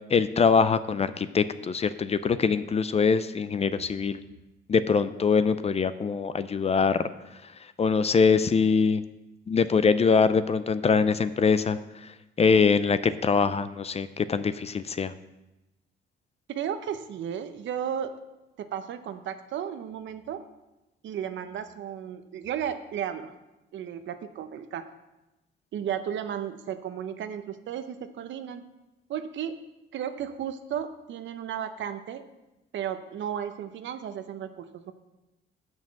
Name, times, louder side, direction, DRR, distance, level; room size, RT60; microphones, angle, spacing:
voice 1, 0.1-4.2 4.7-7.0 7.8-9.0 9.5-11.8 12.4-15.1, left 5 dB, 30° left, 13 dB, 0.5 m, -23 dB
voice 2, 16.5-18.2 18.6-20.4 21.0-23.3 23.7-24.9 25.7-28.6 29.1-29.6 29.9-32.2 32.7-34.9, right 9 dB, 70° right, 10 dB, 0.8 m, -34 dB
6.8 x 6.2 x 7.3 m, 0.99 s
cardioid pair, 90°, 20 cm